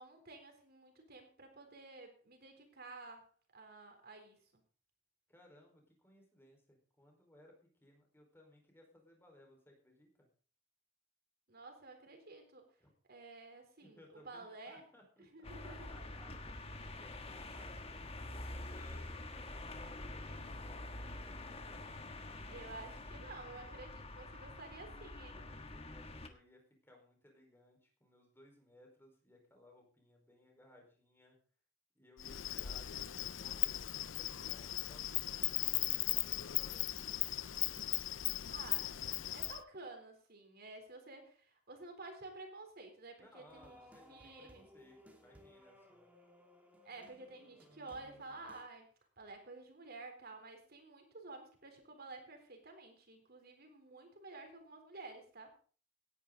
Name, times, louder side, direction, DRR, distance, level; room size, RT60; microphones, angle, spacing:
voice 1, 0.0-3.3 3.5-4.4 11.5-12.7 13.1-14.9 15.3-15.9 22.5-25.4 38.5-39.0 39.3-43.8 44.1-44.7 46.8-48.9 49.2-55.5, right 3 dB, 55° right, 5 dB, 3.9 m, -52 dB
voice 2, 5.3-10.3 12.8-12.9 13.8-17.9 18.3-22.2 24.9-31.4 31.9-36.9 43.2-46.0, left 1 dB, 10° left, 1 dB, 4.8 m, -63 dB
sound 1, 15.4-26.3, left 2 dB, 30° left, 1.6 m, -47 dB
Insect, 32.2-39.6, left 15 dB, 90° left, 0.6 m, -37 dB
sound 2, 43.5-48.6, equal, 10° right, 2.5 m, -61 dB
17.5 x 10.5 x 4.0 m, 0.41 s
head